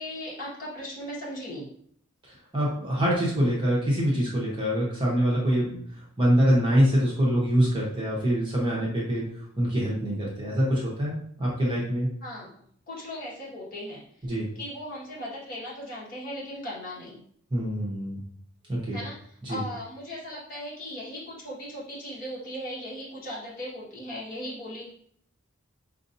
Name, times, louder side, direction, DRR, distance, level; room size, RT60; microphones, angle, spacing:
voice 1, 0.0-1.7 12.2-12.6 12.9-17.2 18.9-24.9, equal, 40° left, -7 dB, 1.5 m, -38 dB
voice 2, 2.5-5.8 6.2-9.2 9.6-12.1 14.2-14.5 17.5-18.2 18.7-19.0 19.4-19.6, equal, 20° right, -5 dB, 0.9 m, -24 dB
5.2 x 2.6 x 2.6 m, 0.65 s
head